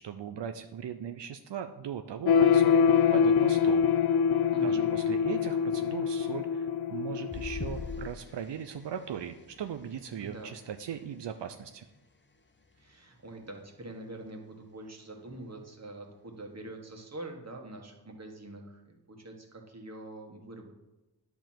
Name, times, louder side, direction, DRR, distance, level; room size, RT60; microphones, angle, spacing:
voice 1, 0.0-2.8 3.1-3.8 4.6-11.8, right 8 dB, 85° right, 8 dB, 0.6 m, -39 dB
sound 1, 2.3-8.1, left 7 dB, 65° left, 0.5 m, -25 dB
voice 2, 4.5-4.9 10.2-10.6 12.8-20.7, right 1 dB, 40° right, 2 dB, 1.8 m, -45 dB
sound 2, 7.3-12.0 12.6-12.8 13.2-13.3, left 4 dB, 25° left, 0.9 m, -45 dB
10.0 x 4.7 x 7.5 m, 1.0 s
wide cardioid pair, 85°, 41 cm